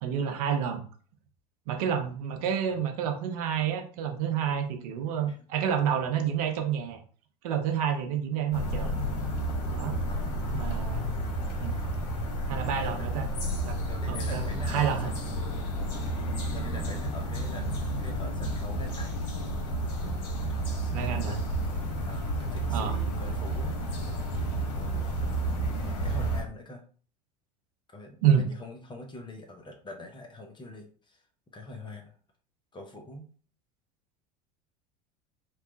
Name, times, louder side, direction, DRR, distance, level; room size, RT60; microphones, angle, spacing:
voice 1, 0.0-0.8 1.7-7.0 7.4-9.0 9.7-10.0 10.5-11.1 11.6-11.8 12.5-13.3 13.6-13.8 14.1-15.1 20.9-21.4 22.7-22.9 28.2-28.5, right 8 dB, 65° right, 6 dB, 0.8 m, -29 dB
sound 1, 8.5-26.4, right 1 dB, 65° left, 1.0 m, -31 dB
voice 2, 10.1-10.6 12.8-13.1 13.9-15.5 16.1-19.2 20.4-21.5 22.1-23.9 24.7-26.8 27.9-31.2 31.5-32.2 32.7-33.3, left 2 dB, 20° left, 3 dB, 0.8 m, -45 dB
3.0 x 2.3 x 3.8 m, 0.41 s
hypercardioid pair, 75°, 21 cm